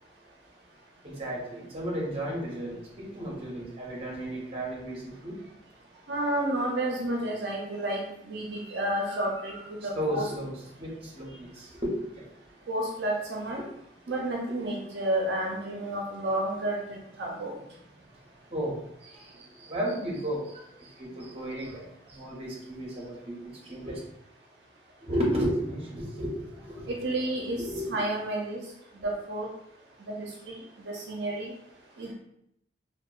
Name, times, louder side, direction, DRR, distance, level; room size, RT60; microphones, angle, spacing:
voice 1, 1.0-5.4 9.8-12.3 18.5-24.0 25.0-27.1 27.5-28.0, equal, 30° right, -4 dB, 0.7 m, -34 dB
voice 2, 6.1-8.0 8.3-10.3 12.7-13.6 14.1-16.8 17.2-17.5 26.9-27.6 27.9-28.6 29.0-29.5 30.1-30.3 30.9-31.5 32.0-32.1, right 1 dB, 70° right, -1 dB, 0.5 m, -30 dB
2.7 x 2.1 x 2.3 m, 0.77 s
head